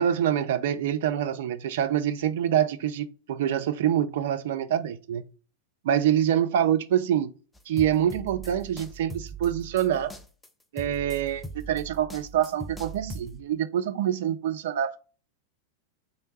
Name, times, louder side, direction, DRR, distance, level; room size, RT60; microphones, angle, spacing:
voice 1, 0.0-5.2 5.8-7.3 7.7-10.1 10.7-15.0, right 10 dB, 55° right, 0.4 m, -26 dB
sound 1, 7.5-13.4, right 3 dB, 5° left, 0.4 m, -40 dB
3.3 x 2.6 x 2.9 m
figure-of-eight pair, 90°, 0 cm